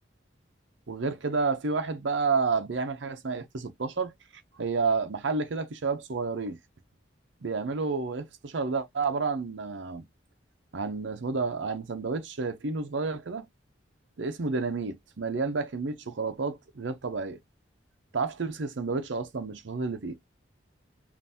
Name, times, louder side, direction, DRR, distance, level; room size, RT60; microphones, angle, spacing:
voice 1, 0.9-4.1 4.6-6.6 7.4-10.0 10.7-13.4 14.2-17.4 18.1-20.1, right 4 dB, 75° right, 0.6 m, -30 dB
5.4 x 2.5 x 2.7 m
head